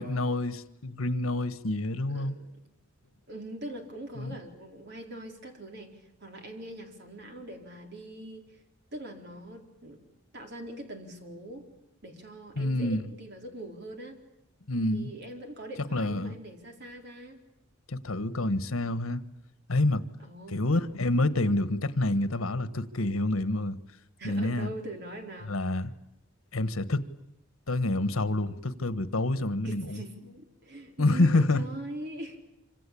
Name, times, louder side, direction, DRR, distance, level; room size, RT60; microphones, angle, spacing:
voice 1, 0.0-2.4 4.2-4.3 12.6-13.0 14.7-15.1 15.9-16.4 17.9-19.2 19.7-20.0 20.5-23.8 24.2-24.7 25.5-25.9 26.5-27.0 27.7-30.0 31.0-31.6, left 2 dB, 80° left, 1.4 m, -27 dB
voice 2, 2.1-2.6 3.3-8.6 8.9-10.1 10.3-11.7 12.0-14.2 14.9-17.4 20.2-20.6 24.2-25.6 29.6-32.5, right 1 dB, 55° right, 4.3 m, -42 dB
26.0 x 26.0 x 8.6 m
head